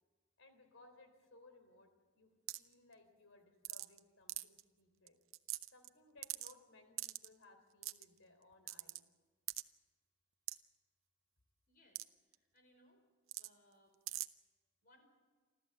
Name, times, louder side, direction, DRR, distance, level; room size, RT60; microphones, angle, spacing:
voice 1, 0.4-2.3 2.6-5.2 5.7-9.0, left 2 dB, 75° left, 7 dB, 3.6 m, -64 dB
sound 1, 2.5-2.7 3.6-4.0 4.3-4.6 5.1-5.2 5.3-5.9 6.2-6.5 7.0-7.3 7.8-8.0 8.7-9.0 9.5-9.6 10.5-10.6 12.0-12.1 12.3-12.4 13.3-13.5 14.1-14.3, right 16 dB, 80° right, 0.7 m, -42 dB
voice 2, 11.7-13.0 13.4-13.9 14.8-15.0, left 1 dB, 45° left, 4 dB, 4.9 m, -69 dB
28.5 x 13.5 x 7.8 m, 1.4 s
head